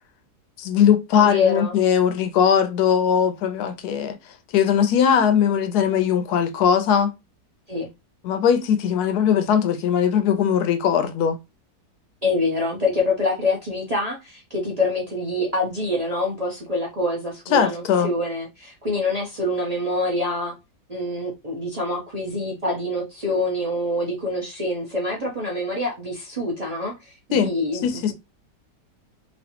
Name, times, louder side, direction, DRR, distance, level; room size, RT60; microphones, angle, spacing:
voice 1, 0.6-4.2 4.5-7.1 8.2-11.4 17.5-18.1 27.3-27.5 27.8-28.1, left 8 dB, 75° left, 1.1 m, -20 dB
voice 2, 1.1-1.7 7.7-7.9 12.2-20.5 20.9-28.1, left 2 dB, 55° right, 0.4 m, -26 dB
3.1 x 2.7 x 2.8 m
omnidirectional pair, 1.8 m